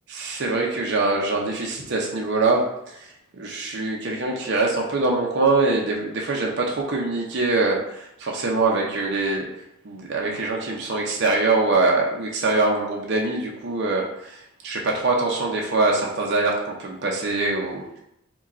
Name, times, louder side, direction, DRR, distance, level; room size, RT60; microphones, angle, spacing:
voice 1, 0.1-9.5 9.8-18.0, right 3 dB, 55° right, -1 dB, 0.6 m, -23 dB
4.8 x 2.3 x 4.1 m, 0.80 s
head